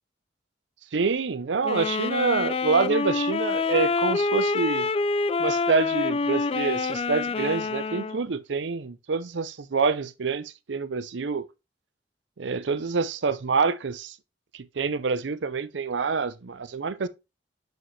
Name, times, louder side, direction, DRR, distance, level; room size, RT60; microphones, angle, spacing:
voice 1, 0.9-4.9 5.4-11.4 12.4-14.2 14.5-17.1, right 4 dB, 80° right, 0.6 m, -27 dB
sound 1, 1.6-8.2, left 4 dB, 35° left, 0.3 m, -26 dB
7.7 x 5.0 x 3.2 m
head